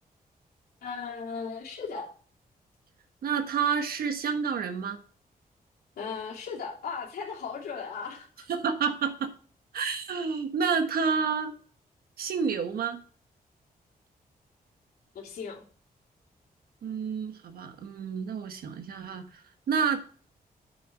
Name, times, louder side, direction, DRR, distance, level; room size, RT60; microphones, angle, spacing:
voice 1, 0.8-2.1 6.0-8.4 15.1-15.6, left 5 dB, 90° left, -3 dB, 3.1 m, -37 dB
voice 2, 3.2-5.0 8.5-9.3 9.7-11.5 12.2-13.0 16.8-19.2 19.7-20.0, right 6 dB, 80° right, 7 dB, 1.3 m, -29 dB
8.8 x 6.8 x 4.7 m, 0.43 s
wide cardioid pair, 165°, 15 cm